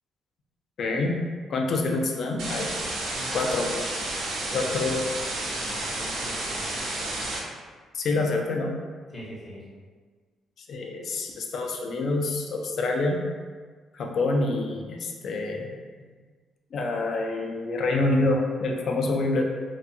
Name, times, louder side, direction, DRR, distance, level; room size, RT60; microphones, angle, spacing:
voice 1, 0.8-1.2 1.5-2.7 3.3-3.7 4.5-5.1 7.9-8.7 10.6-13.2 13.9-15.7 16.7-19.4, left 2 dB, 60° left, 2 dB, 0.4 m, -26 dB
sound 1, 2.4-7.4, right 2 dB, 80° right, 0.6 m, -31 dB
voice 2, 3.1-3.5 4.5-4.9 5.6-6.9 9.1-9.6 16.0-16.1, equal, 30° left, -6 dB, 0.7 m, -42 dB
2.5 x 2.3 x 2.6 m, 1.5 s
cardioid pair, 90°, 0 cm